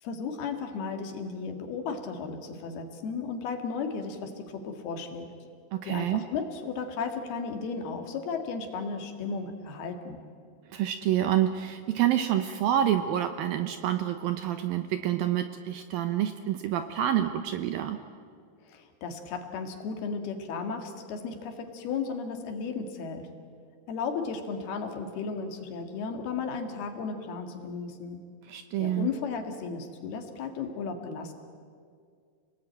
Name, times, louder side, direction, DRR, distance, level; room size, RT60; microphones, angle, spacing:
voice 1, 0.0-5.3 5.8-10.2 18.6-23.3 23.9-28.2 28.8-31.3, left 5 dB, 65° left, 6 dB, 3.7 m, -35 dB
voice 2, 5.7-6.2 10.7-18.0 28.5-29.1, right 11 dB, 75° right, 9 dB, 2.3 m, -27 dB
29.0 x 19.5 x 9.0 m, 2.2 s
omnidirectional pair, 4.9 m